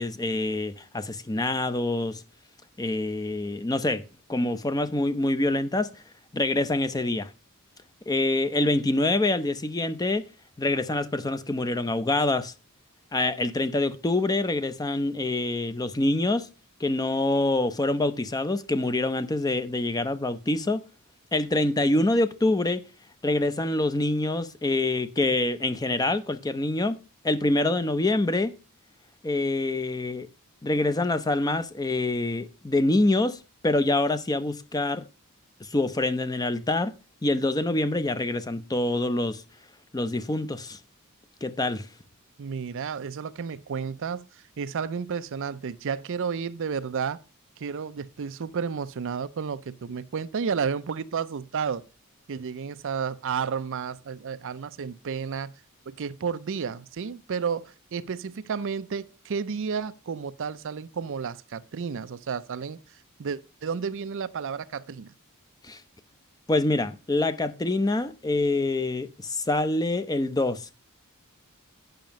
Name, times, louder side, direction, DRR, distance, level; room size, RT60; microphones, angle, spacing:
voice 1, 0.0-2.2 2.8-4.0 4.3-5.9 6.3-7.3 8.1-10.2 10.6-12.5 13.1-16.5 16.8-20.8 21.3-22.8 23.2-27.0 27.2-28.5 29.2-30.3 30.6-33.4 33.6-35.0 35.6-36.9 37.2-39.4 39.9-40.8 41.4-41.9 65.6-65.8 66.5-70.8, left 2 dB, 15° left, 0.6 m, -25 dB
voice 2, 42.4-47.2 47.6-51.8 52.3-55.5 55.9-65.1, right 6 dB, 60° right, 0.5 m, -32 dB
9.1 x 5.7 x 5.2 m
head